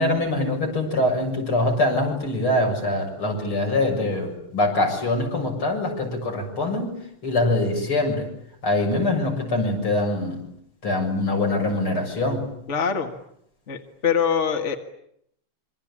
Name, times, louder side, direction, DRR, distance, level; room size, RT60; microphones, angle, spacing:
voice 1, 0.0-7.0 7.2-8.3 8.6-10.4 10.8-12.5, left 2 dB, 75° left, 2 dB, 8.0 m, -23 dB
voice 2, 12.7-13.1 13.7-14.8, left 7 dB, 35° left, 5 dB, 2.0 m, -23 dB
27.0 x 25.0 x 8.7 m, 0.72 s
omnidirectional pair, 2.4 m